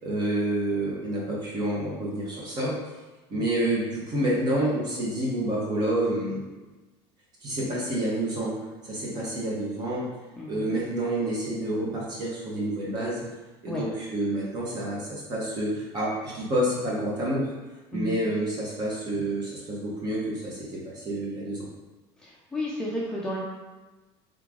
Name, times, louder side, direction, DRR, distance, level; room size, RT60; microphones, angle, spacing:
voice 1, 0.0-2.7 3.3-6.5 7.4-8.6 8.8-10.1 10.5-13.2 13.6-17.5 17.9-21.7, right 1 dB, 30° right, -5 dB, 1.3 m, -28 dB
voice 2, 10.4-10.8 13.7-13.8 17.9-18.2 22.2-23.4, left 1 dB, 5° left, -6 dB, 0.5 m, -32 dB
3.7 x 3.3 x 3.7 m, 1.2 s
cardioid pair, 155°, 13 cm